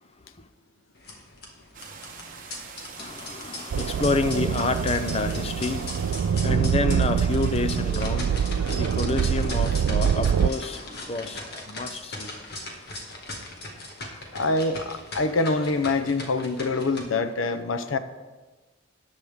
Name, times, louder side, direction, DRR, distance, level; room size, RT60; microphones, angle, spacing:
sound 1, 1.0-17.0, left 2 dB, 50° left, 1.8 m, -39 dB
sound 2, 1.7-11.2, right 5 dB, 40° right, 1.2 m, -45 dB
voice 1, 3.0-12.3, left 3 dB, 30° left, 10 dB, 0.5 m, -29 dB
sound 3, 3.7-10.5, right 7 dB, 85° right, 0.3 m, -25 dB
voice 2, 14.3-18.0, left 3 dB, 75° left, 12 dB, 0.7 m, -25 dB
13.5 x 9.5 x 3.6 m, 1.3 s
head